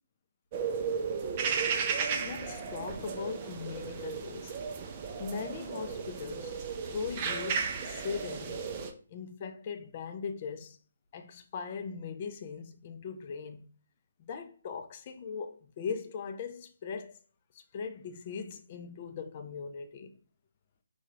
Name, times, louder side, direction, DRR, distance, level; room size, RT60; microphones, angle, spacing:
sound 1, 0.5-8.9, right 6 dB, 30° right, 0.4 m, -34 dB
voice 1, 2.0-4.6 5.2-6.6 6.8-8.6 9.1-10.8 11.1-13.7 14.2-17.2 17.5-20.2, left 6 dB, 35° left, 0.4 m, -39 dB
4.6 x 2.3 x 3.0 m
figure-of-eight pair, 140°, 0 cm